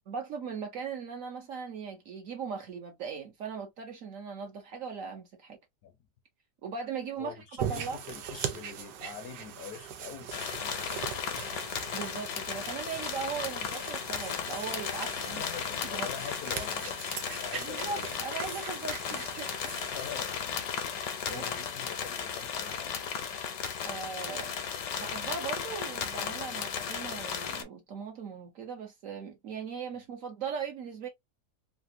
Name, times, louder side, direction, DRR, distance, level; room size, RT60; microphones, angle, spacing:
voice 1, 0.1-5.6 6.6-7.3 7.7-8.0 11.9-15.4 15.9-16.1 17.6-19.9 21.3-21.4 23.8-24.5 25.0-31.1, right 6 dB, 60° right, 0.9 m, -39 dB
voice 2, 7.2-11.2 15.3-18.1 19.1-19.2 19.9-20.7 21.2-23.0, left 7 dB, 70° left, 0.9 m, -45 dB
Dog growling, 7.6-20.1, right 9 dB, 85° right, 1.3 m, -41 dB
sound 1, 10.3-27.6, left 7 dB, 85° left, 1.4 m, -35 dB
3.4 x 2.4 x 2.6 m
omnidirectional pair, 1.8 m